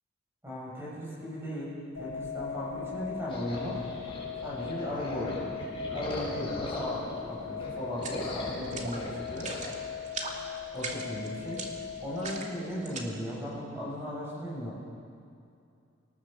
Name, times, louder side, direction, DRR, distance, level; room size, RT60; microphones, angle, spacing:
voice 1, 0.4-3.8 4.4-5.5 5.9-9.5 10.7-11.6 12.0-14.8, equal, 10° right, -5 dB, 7.6 m, -36 dB
sound 1, 2.0-12.4, left 7 dB, 80° left, 6.0 m, -39 dB
sound 2, 3.3-7.2 7.5-9.7, left 1 dB, 25° left, 7.5 m, -40 dB
sound 3, 8.0-8.2 8.7-9.0 9.3-9.7 10.0-10.4 10.8-13.0, right 4 dB, 40° right, 2.6 m, -39 dB
28.0 x 19.5 x 7.6 m, 2.5 s
head